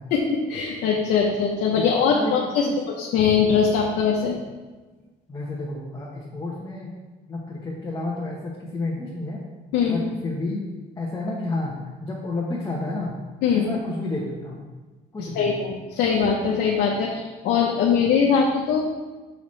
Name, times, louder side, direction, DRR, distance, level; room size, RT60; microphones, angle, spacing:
voice 1, 0.1-2.7 3.0-4.4 9.7-10.0 13.4-13.7 15.2-18.8, left 6 dB, 80° left, -1 dB, 0.8 m, -21 dB
voice 2, 1.7-2.7 5.3-6.9 7.3-9.4 9.9-10.6 11.0-13.1 13.5-14.6 15.1-15.5, left 2 dB, 20° left, -4 dB, 1.0 m, -30 dB
5.8 x 5.7 x 3.2 m, 1.3 s
cardioid pair, 110°, 17 cm